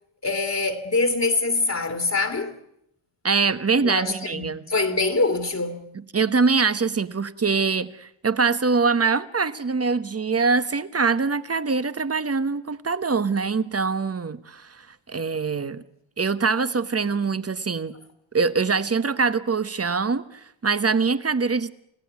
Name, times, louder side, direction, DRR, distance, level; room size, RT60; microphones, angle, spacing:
voice 1, 0.2-2.5 3.8-5.9, left 3 dB, 35° left, 2.3 m, -24 dB
voice 2, 3.2-4.6 6.1-15.8 16.2-17.9 18.3-21.7, right 4 dB, 30° right, 1.3 m, -23 dB
29.0 x 16.5 x 9.5 m
wide cardioid pair, 130°, 48 cm